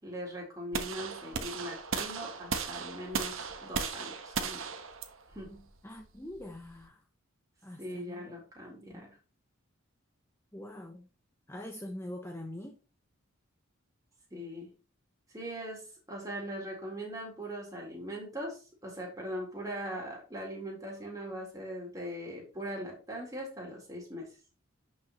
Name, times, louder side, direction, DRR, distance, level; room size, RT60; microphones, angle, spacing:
voice 1, 0.0-4.7 5.3-5.7 7.8-9.2 14.3-14.7 15.3-24.4, equal, 15° right, 3.9 m, -40 dB
sound 1, 0.7-6.8, right 5 dB, 70° right, 1.2 m, -37 dB
voice 2, 5.8-7.0 7.6-8.3 8.7-9.0 10.5-11.1 11.5-12.8, left 1 dB, 10° left, 0.8 m, -44 dB
11.0 x 6.3 x 3.1 m
head